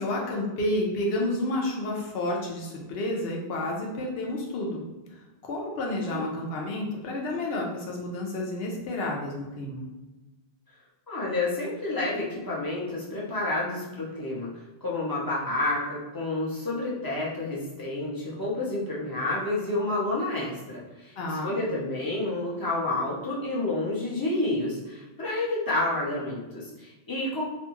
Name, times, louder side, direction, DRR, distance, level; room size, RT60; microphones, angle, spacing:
voice 1, 0.0-4.8 5.5-9.9 21.2-21.6, left 1 dB, 70° left, -1 dB, 0.8 m, -30 dB
voice 2, 11.1-14.5 14.8-27.4, left 2 dB, 25° left, -6 dB, 0.6 m, -29 dB
2.6 x 2.2 x 2.9 m, 1.1 s
omnidirectional pair, 1.1 m